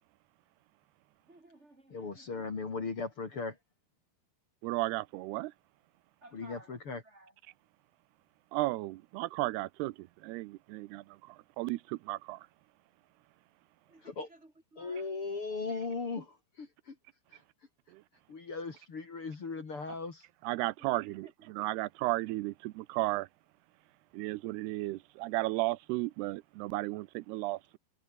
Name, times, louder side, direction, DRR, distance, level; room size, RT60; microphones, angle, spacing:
voice 1, 1.3-2.4 6.2-6.8 7.0-7.3 13.9-15.1 20.8-21.3, right 2 dB, 15° right, 4.8 m, -57 dB
voice 2, 1.9-3.6 6.3-7.0 14.0-14.3 14.8-17.0 17.3-17.4 18.3-20.2, left 4 dB, 35° left, 3.4 m, -38 dB
voice 3, 4.6-5.5 8.5-12.5 17.9-18.0 20.4-23.3 24.1-27.8, right 19 dB, 85° right, 2.8 m, -34 dB
omnidirectional pair, 4.6 m